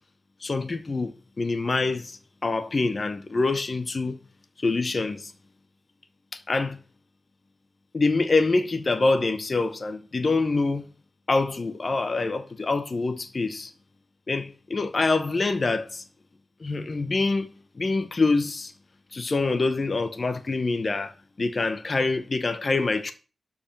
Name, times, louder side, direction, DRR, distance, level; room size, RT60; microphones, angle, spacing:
voice 1, 0.4-4.2 4.6-5.3 6.3-6.8 7.9-10.8 11.3-13.7 14.3-16.0 16.6-18.7 19.1-23.1, left 3 dB, 35° left, 0.9 m, -25 dB
12.0 x 4.9 x 7.5 m
wide cardioid pair, 160°, 0 cm